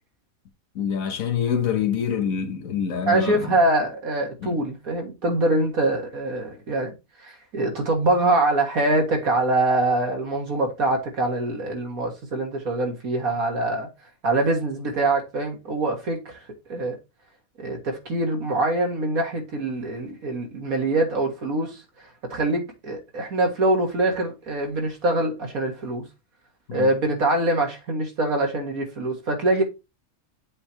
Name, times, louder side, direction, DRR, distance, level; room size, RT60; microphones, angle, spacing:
voice 1, 0.7-3.5 4.4-4.6 26.7-26.9, left 8 dB, 70° left, 1.4 m, -26 dB
voice 2, 3.1-6.9 7.2-13.9 14.2-16.4 16.7-17.0 17.6-21.8 22.3-26.0 26.7-29.6, right 2 dB, 75° right, 2.3 m, -24 dB
7.7 x 3.2 x 4.4 m
omnidirectional pair, 1.5 m